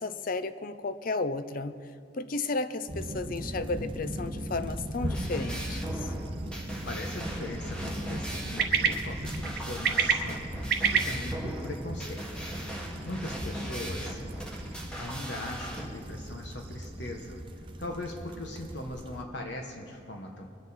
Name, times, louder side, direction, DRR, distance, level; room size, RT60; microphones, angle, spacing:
voice 1, 0.0-1.8 2.2-5.9, left 3 dB, 45° left, 12 dB, 0.5 m, -33 dB
sound 1, 2.9-19.2, right 1 dB, 25° right, 0.7 m, -39 dB
sound 2, 4.9-15.9, equal, 5° left, 1.5 m, -39 dB
sound 3, 5.7-17.4, right 7 dB, 50° right, 0.9 m, -34 dB
voice 2, 6.8-12.5 13.1-14.2 15.0-20.5, left 1 dB, 60° left, 2 dB, 1.1 m, -40 dB
22.0 x 8.2 x 4.1 m, 2.6 s
head